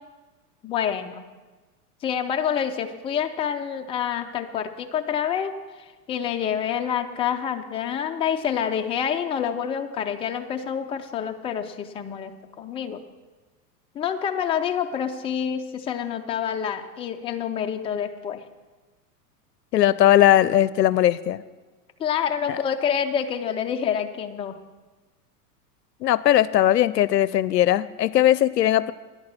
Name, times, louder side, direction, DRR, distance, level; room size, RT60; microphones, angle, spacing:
voice 1, 0.6-1.2 2.0-5.5 5.8-13.0 13.9-18.4 22.0-24.5, left 8 dB, 10° left, 5 dB, 0.4 m, -27 dB
voice 2, 19.7-21.4 22.4-22.6 26.0-28.9, left 12 dB, 90° left, 17 dB, 0.5 m, -19 dB
10.5 x 8.6 x 6.1 m, 1.3 s
hypercardioid pair, 105°, 48 cm